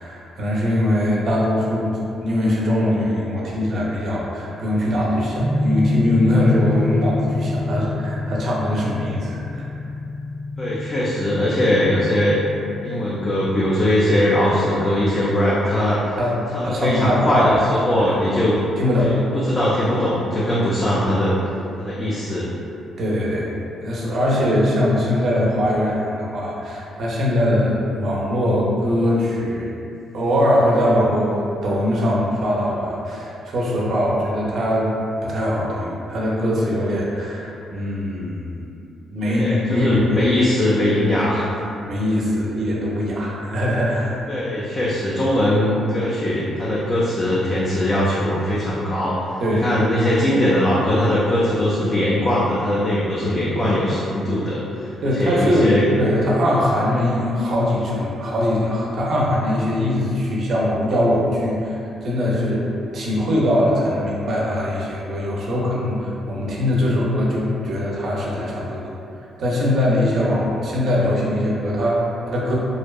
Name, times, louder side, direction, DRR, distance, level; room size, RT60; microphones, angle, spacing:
voice 1, 0.0-9.7 16.2-17.5 18.8-19.2 23.0-23.5 23.8-29.7 30.1-34.9 35.2-38.7 39.1-39.4 39.7-40.2 41.2-41.3 41.9-44.2 49.4-49.7 55.0-62.7 62.9-68.8 69.4-72.6, left 1 dB, 60° right, -4 dB, 0.5 m, -21 dB
sound 1, 5.4-15.1, left 2 dB, 10° right, 0.7 m, -27 dB
voice 2, 10.6-12.4 12.8-16.2 16.5-18.6 19.0-21.3 21.8-22.5 39.2-41.5 44.3-55.8, left 1 dB, 30° left, -7 dB, 0.4 m, -21 dB
2.6 x 2.0 x 2.3 m, 2.6 s
cardioid pair, 90°, 0 cm